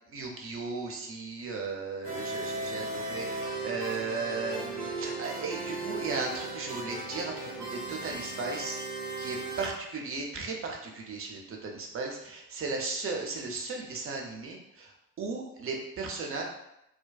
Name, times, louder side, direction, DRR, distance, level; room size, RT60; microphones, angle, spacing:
voice 1, 0.1-8.8 9.2-14.9 15.2-16.4, right 4 dB, 30° right, 0 dB, 0.6 m, -36 dB
sound 1, 2.0-9.7, right 2 dB, 90° right, 0.8 m, -36 dB
2.4 x 2.2 x 2.3 m, 0.82 s
figure-of-eight pair, 45°, 44 cm